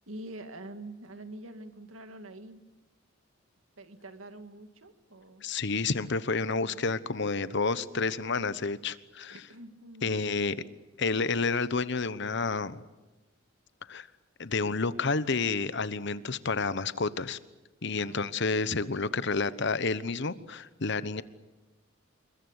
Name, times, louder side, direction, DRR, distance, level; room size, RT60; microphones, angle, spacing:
voice 1, 0.0-2.6 3.8-5.5 6.5-6.9 9.3-10.2 18.0-18.3, right 1 dB, 85° right, 8 dB, 2.1 m, -46 dB
voice 2, 5.4-9.3 10.0-10.6 11.0-12.8 13.9-14.1 14.4-17.4 17.8-21.2, left 4 dB, 60° left, 14 dB, 1.1 m, -30 dB
28.0 x 22.5 x 8.3 m, 1.1 s
head